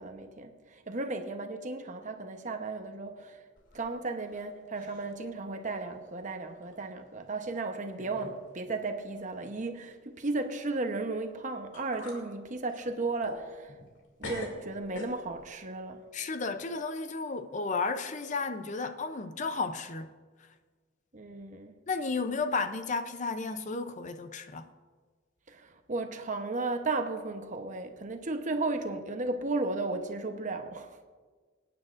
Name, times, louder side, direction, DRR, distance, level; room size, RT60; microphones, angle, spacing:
voice 1, 0.0-3.4 3.7-13.7 14.2-16.0 21.1-21.7 25.5-31.0, right 3 dB, 40° right, 0.9 m, -35 dB
sound 1, 3.6-4.5 4.7-5.2 5.7-5.8 6.6-6.7 7.5-7.6 8.0-8.4 8.6-8.8 11.3-11.4 11.7-12.2 12.7-14.0 14.2-15.5, left 1 dB, 75° left, 2.7 m, -43 dB
voice 2, 16.1-20.1 21.9-24.7, left 4 dB, 40° left, 0.5 m, -33 dB
26.0 x 9.6 x 2.5 m
head